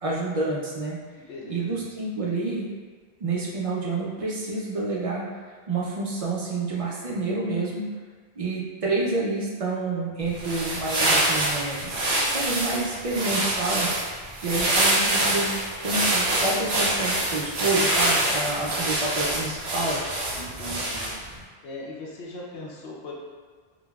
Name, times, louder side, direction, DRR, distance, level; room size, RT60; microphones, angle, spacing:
voice 1, 0.0-1.0 1.5-2.7 3.2-5.3 5.7-7.9 8.4-11.9 12.2-13.9 14.4-15.6 15.8-20.0, right 3 dB, 55° right, -5 dB, 0.4 m, -28 dB
voice 2, 1.2-1.8 20.3-21.1 21.6-23.1, left 1 dB, 85° left, -3 dB, 0.9 m, -39 dB
sound 1, 10.3-21.3, right 1 dB, 80° right, 1.0 m, -25 dB
3.8 x 2.1 x 2.3 m, 1.5 s
omnidirectional pair, 1.1 m